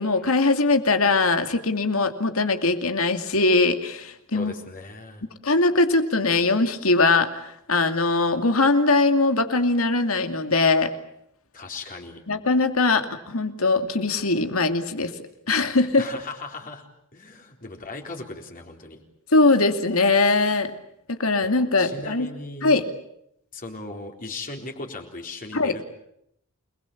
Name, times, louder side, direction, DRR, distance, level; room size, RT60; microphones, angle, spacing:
voice 1, 0.0-4.5 5.4-10.9 12.3-15.1 15.5-16.0 19.3-20.7 21.2-22.3 22.6-22.8 25.5-25.7, left 3 dB, 70° left, 7 dB, 2.6 m, -21 dB
voice 2, 4.3-5.2 11.5-12.2 16.0-16.8 17.1-19.0 21.8-22.8 23.5-25.8, left 2 dB, 40° left, 2 dB, 4.0 m, -37 dB
29.0 x 21.0 x 8.6 m, 0.75 s
head